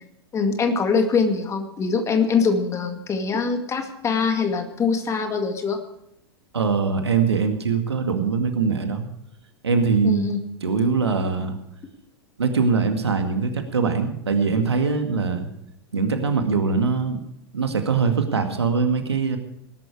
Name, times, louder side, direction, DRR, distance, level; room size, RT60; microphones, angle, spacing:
voice 1, 0.3-5.8 10.0-10.4, left 5 dB, 20° left, 6 dB, 2.1 m, -23 dB
voice 2, 6.5-9.1 9.6-10.3 10.6-11.6 12.4-15.5 15.9-17.2 17.5-19.4, right 5 dB, 80° right, 6 dB, 2.1 m, -22 dB
19.0 x 11.5 x 4.8 m, 0.78 s
figure-of-eight pair, 100°, 14 cm